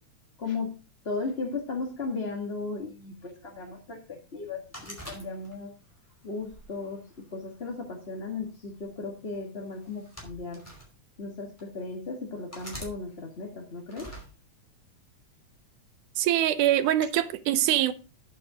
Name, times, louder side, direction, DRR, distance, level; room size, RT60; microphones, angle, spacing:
voice 1, 0.4-0.7 1.0-5.7 6.2-7.0 7.3-10.6 11.2-14.2, left 3 dB, 25° left, 1.4 m, -36 dB
sound 1, 4.7-5.8 6.4-7.6 8.5-8.8 9.8-10.9 11.6-11.7 12.5-12.9 13.9-14.3, equal, 5° left, 4.5 m, -44 dB
voice 2, 16.2-17.9, right 12 dB, 85° right, 2.3 m, -24 dB
11.0 x 7.8 x 5.0 m
omnidirectional pair, 3.5 m